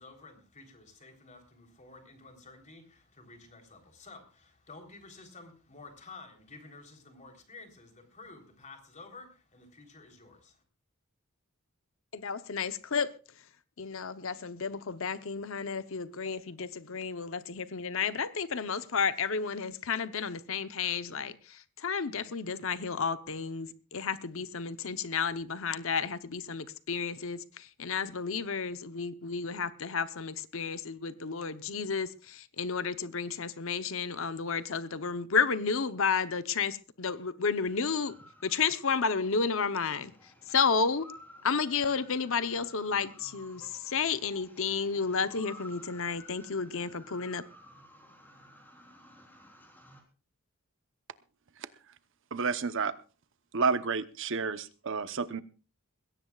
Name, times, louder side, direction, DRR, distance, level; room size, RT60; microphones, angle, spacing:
voice 1, 0.0-10.6, left 3 dB, 35° left, 3.8 m, -51 dB
voice 2, 12.1-13.4 13.8-38.1 38.4-41.1 41.4-47.5, left 5 dB, 65° left, 0.9 m, -32 dB
sound 1, 37.5-50.0, equal, 10° left, 3.8 m, -55 dB
voice 3, 52.3-52.9 53.5-55.4, right 5 dB, 60° right, 0.9 m, -30 dB
21.0 x 17.0 x 2.4 m
head